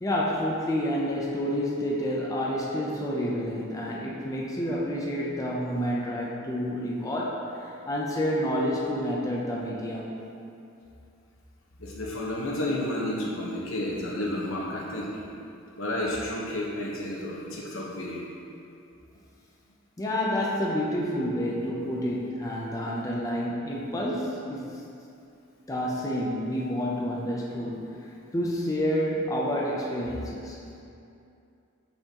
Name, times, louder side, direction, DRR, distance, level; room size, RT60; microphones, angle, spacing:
voice 1, 0.0-10.1 20.0-24.8 25.7-27.8 28.3-30.6, equal, 15° left, -4 dB, 0.5 m, -29 dB
voice 2, 11.8-15.2 15.8-18.2, left 1 dB, 75° left, -4 dB, 1.1 m, -31 dB
8.6 x 4.5 x 2.9 m, 2.6 s
head